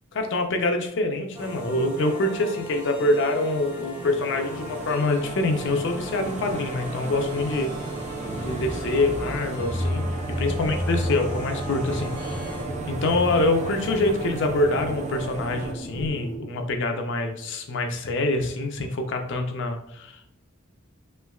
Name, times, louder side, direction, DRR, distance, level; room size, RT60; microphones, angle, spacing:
voice 1, 0.1-7.7 8.4-10.0 10.4-12.5 12.9-20.3, left 2 dB, 65° left, 5 dB, 0.5 m, -25 dB
sound 1, 1.3-12.6, left 1 dB, 5° right, 0.8 m, -39 dB
sound 2, 4.3-15.7, right 3 dB, 35° right, 0.3 m, -34 dB
sound 3, 8.2-16.4, equal, 20° left, 0.7 m, -33 dB
3.2 x 3.0 x 2.3 m, 0.77 s
head